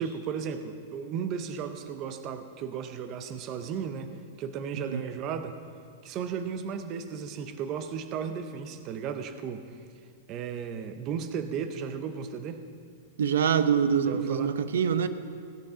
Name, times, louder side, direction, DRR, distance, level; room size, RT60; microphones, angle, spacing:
voice 1, 0.0-4.1 4.4-5.6 6.0-9.8 10.3-12.6 14.1-14.5, right 7 dB, 25° right, 9 dB, 0.5 m, -35 dB
voice 2, 4.7-5.0 13.2-15.1, right 7 dB, 90° right, 12 dB, 0.7 m, -25 dB
17.0 x 8.4 x 5.0 m, 2.2 s
supercardioid pair, 175°, 0 cm